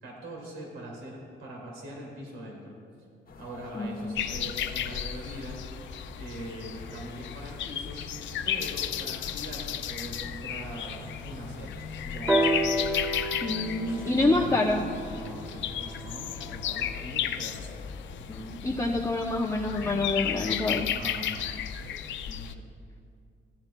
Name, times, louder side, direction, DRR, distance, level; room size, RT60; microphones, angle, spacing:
voice 1, 0.0-2.8 3.4-5.6 6.2-8.0 8.4-12.8 13.8-17.7 20.9-22.6, right 1 dB, 85° right, -2 dB, 2.2 m, -42 dB
sound 1, 3.3-20.1, left 3 dB, 50° left, 1.1 m, -47 dB
voice 2, 3.7-4.2 13.4-14.8 18.3-20.9, left 2 dB, 15° left, -1 dB, 0.6 m, -27 dB
sound 2, 4.2-22.5, left 9 dB, 70° left, 0.5 m, -34 dB
sound 3, 12.3-16.1 17.0-17.1, right 1 dB, 10° right, 0.9 m, -30 dB
15.5 x 10.5 x 2.2 m, 2.3 s
cardioid pair, 90°, 20 cm